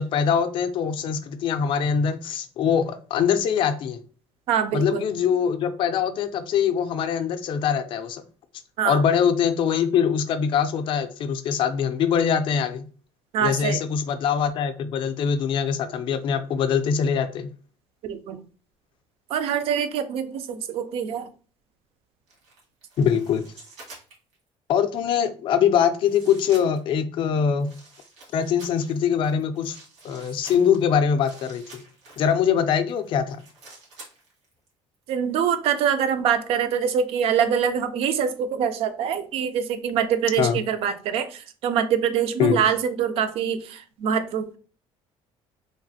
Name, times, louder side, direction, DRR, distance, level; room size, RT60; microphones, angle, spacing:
voice 1, 0.0-4.0 4.7-8.2 8.8-12.9 13.4-17.5 23.0-23.4 24.7-27.7 28.3-29.8 30.0-31.8 32.2-33.4 40.4-40.6 42.4-42.6, left 7 dB, 50° left, 0.4 m, -23 dB
voice 2, 4.5-5.1 8.8-9.0 13.3-13.8 18.0-18.4 19.3-21.3 35.1-44.6, right 8 dB, 60° right, 0.4 m, -24 dB
sound 1, 22.3-24.4 25.2-25.3 26.0-27.0 27.6-32.4 32.9-34.7 34.9-35.1, right 3 dB, 75° right, 1.6 m, -48 dB
3.2 x 2.4 x 2.6 m
cardioid pair, 155°, 11 cm